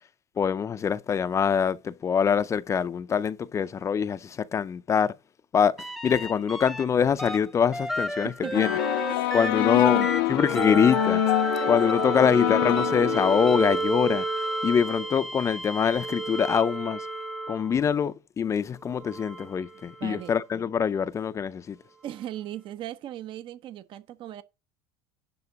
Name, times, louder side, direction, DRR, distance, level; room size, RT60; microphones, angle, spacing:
voice 1, 0.4-5.1 5.5-8.7 9.3-10.0 10.3-11.3 11.7-17.1 17.5-21.8, left 7 dB, 25° left, 0.5 m, -24 dB
sound 1, 5.8-6.9 7.2-18.0 18.8-20.4 22.1-22.2, right 2 dB, ahead, 0.9 m, -32 dB
voice 2, 8.2-8.7 9.1-10.1 12.1-12.8 20.0-20.4 22.0-24.4, right 12 dB, 45° right, 0.8 m, -38 dB
sound 2, 8.5-13.7, left 17 dB, 85° left, 0.7 m, -26 dB
11.0 x 3.8 x 7.1 m
supercardioid pair, 120°, 12 cm